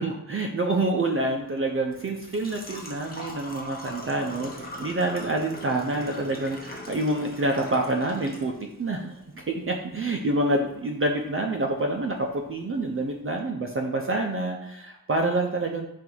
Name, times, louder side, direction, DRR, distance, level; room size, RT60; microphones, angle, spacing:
voice 1, 0.0-8.5 8.8-15.9, right 2 dB, 35° right, 2 dB, 0.5 m, -27 dB
Engine / Trickle dribble / Fill (with liquid), 1.2-13.2, left 1 dB, 25° left, 0.8 m, -43 dB
3.9 x 2.5 x 4.4 m, 0.82 s
wide cardioid pair, 105°, 37 cm